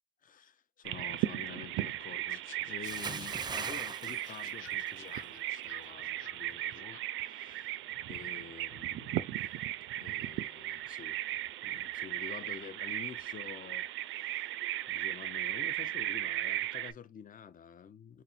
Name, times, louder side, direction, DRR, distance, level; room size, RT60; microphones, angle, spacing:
voice 1, 0.2-7.8 8.1-9.6 9.9-11.2 11.6-13.9 14.1-14.5 14.9-18.2, left 8 dB, 45° left, 0.7 m, -49 dB
Bird vocalization bird call bird song, 0.8-16.9, right 14 dB, 80° right, 0.4 m, -37 dB
sound 1, 2.3-7.6, left 9 dB, 80° left, 1.0 m, -56 dB
Bathtub (filling or washing) / Splash splatter, 2.8-5.3 5.6-5.9, right 4 dB, 20° right, 0.5 m, -41 dB
4.2 x 2.2 x 4.1 m
cardioid pair, 90°, 20 cm